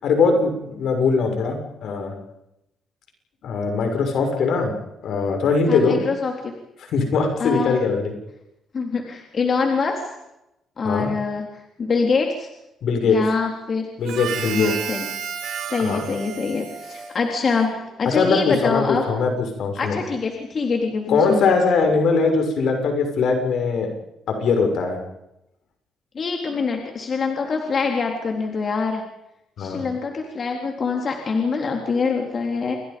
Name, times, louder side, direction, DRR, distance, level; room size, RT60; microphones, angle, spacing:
voice 1, 0.0-2.1 3.4-4.7 5.0-6.0 6.8-8.1 10.8-11.1 12.8-13.2 14.0-14.7 15.8-16.0 18.0-20.0 21.1-23.9 24.3-25.0 29.6-29.8, left 4 dB, 70° left, 5 dB, 6.6 m, -21 dB
voice 2, 5.7-6.5 7.4-7.8 8.7-10.1 10.8-11.5 11.8-12.5 13.0-13.9 14.5-15.1 15.7-19.1 19.8-21.4 26.1-29.0 29.6-32.8, left 4 dB, 45° left, 2 dB, 3.9 m, -24 dB
Harmonica, 14.0-17.8, right 8 dB, 75° right, 4.2 m, -32 dB
28.5 x 22.5 x 5.5 m, 0.88 s
cardioid pair, 90°, 0 cm